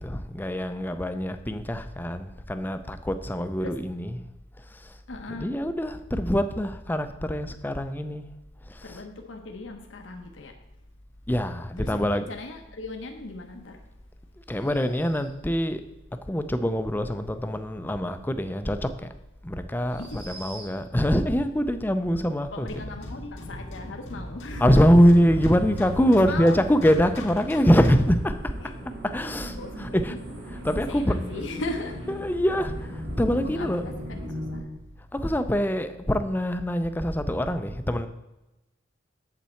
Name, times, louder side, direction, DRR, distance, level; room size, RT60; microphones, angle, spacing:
voice 1, 0.0-4.2 4.7-4.9 5.3-8.3 8.7-9.0 11.3-12.3 14.5-15.8 16.3-19.1 19.4-22.8 24.6-28.3 29.1-30.2 30.5-31.1 32.1-33.8 35.1-38.1, equal, 10° left, 9 dB, 0.4 m, -24 dB
voice 2, 5.1-5.5 8.8-10.5 11.8-13.8 20.0-20.4 22.5-24.8 26.2-26.6 28.6-28.7 29.6-32.0 33.2-33.7 34.2-34.9, left 2 dB, 75° left, 3 dB, 0.9 m, -38 dB
sound 1, 14.4-15.5 18.6-18.7 19.8-21.0, right 4 dB, 85° right, 3.3 m, -47 dB
sound 2, 22.7-28.2, left 1 dB, 90° left, 1.7 m, -40 dB
sound 3, 24.5-34.6, equal, 60° right, 1.8 m, -38 dB
8.4 x 7.4 x 4.4 m, 0.98 s
head